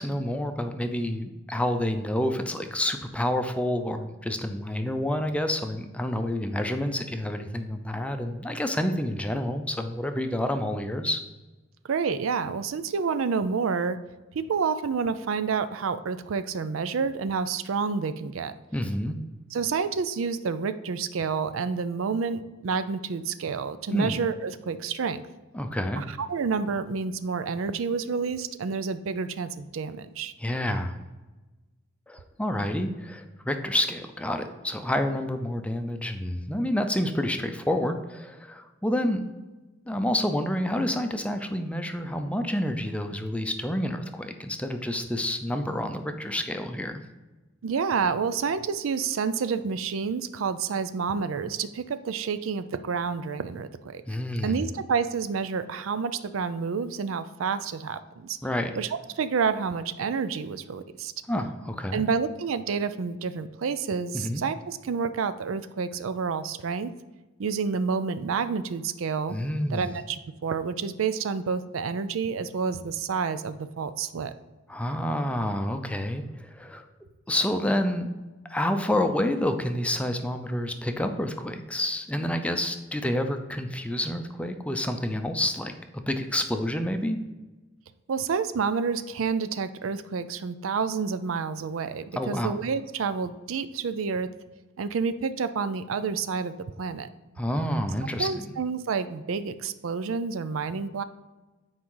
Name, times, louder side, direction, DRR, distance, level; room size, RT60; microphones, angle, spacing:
voice 1, 0.0-11.2 18.7-19.2 23.9-24.2 25.5-26.0 30.4-31.0 32.1-39.2 39.9-47.0 54.1-54.6 58.4-58.7 61.3-62.0 64.1-64.4 69.3-69.9 74.7-76.8 77.3-78.1 78.5-87.2 92.1-92.6 97.4-98.5, left 1 dB, 5° left, 6 dB, 0.5 m, -28 dB
voice 2, 11.9-14.0 14.3-18.5 19.5-25.2 26.0-30.3 47.6-54.0 54.4-58.4 58.8-58.9 59.2-61.1 61.9-66.9 67.4-69.4 69.7-74.3 88.1-94.3 94.8-97.1 98.2-101.0, right 5 dB, 85° right, 12 dB, 0.4 m, -29 dB
8.6 x 4.8 x 3.8 m, 1.2 s
head